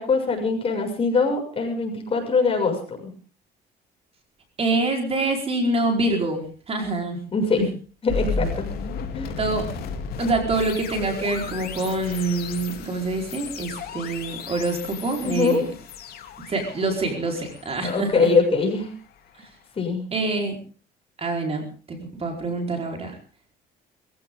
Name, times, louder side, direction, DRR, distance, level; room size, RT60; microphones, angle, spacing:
voice 1, 0.0-3.1 7.3-7.6 8.0-8.7 9.1-9.3 15.3-15.6 17.8-18.9 19.8-20.1, left 4 dB, 35° left, 2 dB, 7.0 m, -22 dB
voice 2, 4.6-7.2 9.4-9.7 10.2-15.6 16.5-18.3 20.1-20.6 21.2-23.2, right 2 dB, 35° right, 3 dB, 4.7 m, -26 dB
sound 1, 8.1-19.1, left 5 dB, 65° left, 3.4 m, -34 dB
22.0 x 16.0 x 3.9 m, 0.38 s
cardioid pair, 110°, 17 cm